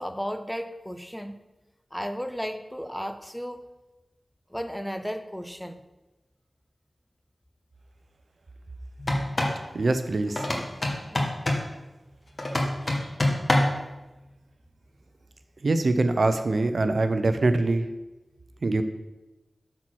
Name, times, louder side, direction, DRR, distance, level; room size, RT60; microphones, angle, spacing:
voice 1, 0.0-1.4 1.9-3.7 4.5-5.8 11.1-11.3, equal, 5° left, 9 dB, 0.5 m, -34 dB
sound 1, 9.0-9.6 10.4-11.7 12.4-13.8, left 1 dB, 40° left, 1.5 m, -25 dB
voice 2, 9.7-10.4 12.9-13.0 15.6-17.9 18.6-18.8, right 2 dB, 65° right, 9 dB, 0.6 m, -23 dB
8.3 x 4.4 x 6.2 m, 1.1 s
wide cardioid pair, 75°, 0 cm